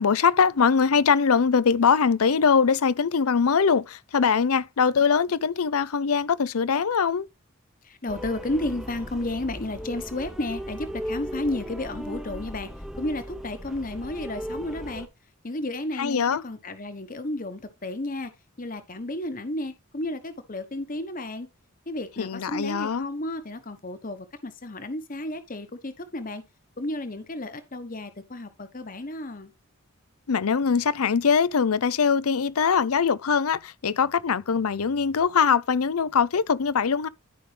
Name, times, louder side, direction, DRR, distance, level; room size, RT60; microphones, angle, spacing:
voice 1, 0.0-7.3 16.0-16.4 22.2-23.1 30.3-37.1, left 6 dB, 80° left, 0.6 m, -22 dB
voice 2, 7.8-12.7 13.0-15.1 15.4-18.3 18.6-21.5 21.9-26.4 26.8-29.5, left 1 dB, 40° left, 1.1 m, -32 dB
sound 1, 8.1-15.1, equal, ahead, 0.8 m, -37 dB
12.5 x 5.3 x 3.3 m
head